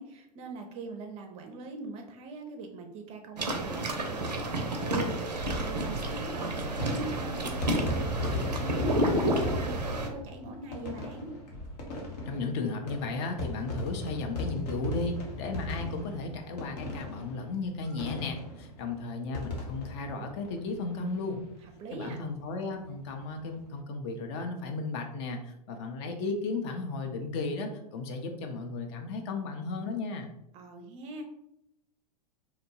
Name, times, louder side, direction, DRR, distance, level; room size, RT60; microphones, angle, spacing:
voice 1, 0.0-11.3 21.8-22.2 30.5-31.2, right 3 dB, 30° right, 4 dB, 0.4 m, -41 dB
sound 1, 3.4-10.1, right 1 dB, 90° right, 0.5 m, -30 dB
sound 2, 5.4-21.3 21.6-21.7 21.9-22.0 23.3-23.5, left 1 dB, 70° left, 0.8 m, -37 dB
voice 2, 12.3-21.4 21.9-30.3, left 3 dB, 45° left, 4 dB, 0.5 m, -35 dB
2.8 x 2.1 x 2.7 m, 0.80 s
figure-of-eight pair, 95°, 21 cm